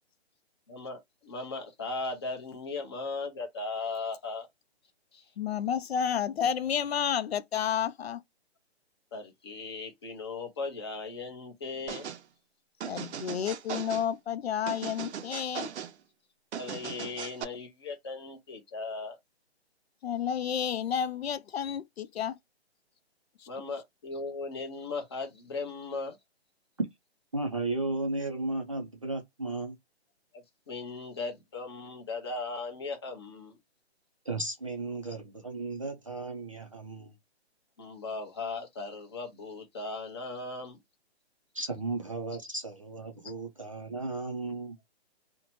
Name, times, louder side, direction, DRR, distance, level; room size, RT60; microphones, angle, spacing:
voice 1, 0.7-4.5 5.1-5.3 9.1-12.1 16.6-19.2 23.5-26.2 30.3-33.6 37.8-40.8, left 3 dB, 25° left, 0.6 m, -37 dB
voice 2, 5.4-8.2 12.9-15.7 20.0-22.3, left 8 dB, 65° left, 0.4 m, -31 dB
sound 1, 11.9-12.2 12.8-14.1 14.7-15.9 16.5-17.4, right 8 dB, 75° right, 0.6 m, -38 dB
voice 3, 27.3-29.8 34.3-37.1 41.5-44.8, right 2 dB, 30° right, 0.4 m, -35 dB
2.7 x 2.1 x 2.9 m
hypercardioid pair, 165°, 34 cm